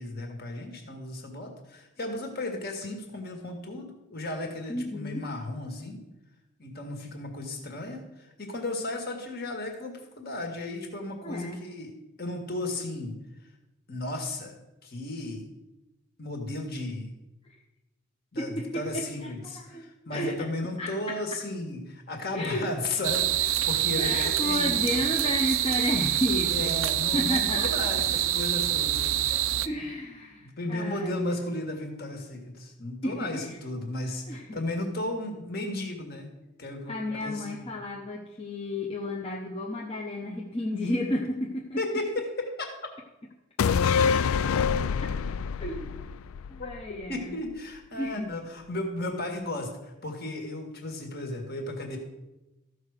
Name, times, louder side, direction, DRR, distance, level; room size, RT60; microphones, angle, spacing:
voice 1, 0.0-6.0 6.6-11.9 12.2-13.1 13.9-14.6 14.8-15.5 16.2-17.1 18.3-25.0 25.7-25.8 26.5-29.1 30.4-36.3 36.6-37.8 41.8-42.7 46.6-46.7 47.1-52.0, left 2 dB, 45° left, 3 dB, 1.8 m, -34 dB
voice 2, 4.7-5.2 11.2-11.6 17.5-17.6 18.4-20.4 20.8-21.2 22.3-22.7 24.0-26.7 27.1-27.9 29.3-31.1 33.0-33.6 34.3-34.6 36.9-41.8 45.6-45.9 46.5-47.4 48.0-48.3, left 1 dB, 25° left, -2 dB, 0.9 m, -32 dB
sound 1, 23.0-29.7, right 12 dB, 70° right, 0.5 m, -26 dB
sound 2, 43.6-47.2 47.5-47.6, left 6 dB, 80° left, 0.4 m, -26 dB
14.0 x 4.8 x 6.5 m, 1.0 s
head